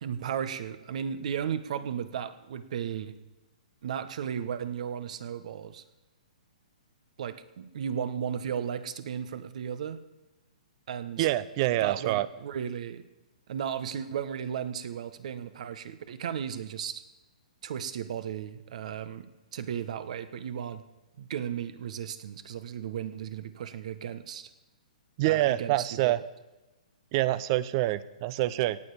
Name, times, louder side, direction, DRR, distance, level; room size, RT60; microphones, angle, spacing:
voice 1, 0.0-3.2 3.8-5.8 7.2-10.0 10.9-11.3 11.8-13.0 13.5-17.0 17.6-20.8 21.2-24.5 25.2-26.2, right 8 dB, 60° right, 12 dB, 1.3 m, -35 dB
voice 2, 11.2-12.3 25.2-26.2 27.1-28.8, right 16 dB, 40° right, 17 dB, 0.8 m, -26 dB
17.5 x 7.0 x 8.4 m, 1.1 s
hypercardioid pair, 135°, 4 cm